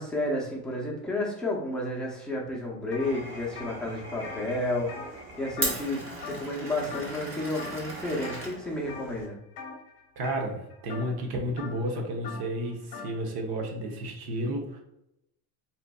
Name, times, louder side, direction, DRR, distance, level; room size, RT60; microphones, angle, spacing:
voice 1, 0.0-4.9 5.4-9.4, left 1 dB, ahead, -5 dB, 0.7 m, -31 dB
sound 1, 2.9-3.1 3.4-5.9 6.2-6.6 6.9-7.3 7.6-8.4 8.9-9.2 9.5-13.2, left 5 dB, 50° left, 0.9 m, -42 dB
Glass, 3.0-9.3, right 2 dB, 30° right, 0.8 m, -38 dB
voice 2, 10.2-14.8, right 1 dB, 55° right, 1 dB, 0.9 m, -32 dB
4.1 x 2.5 x 2.3 m, 0.83 s
cardioid pair, 125°, 44 cm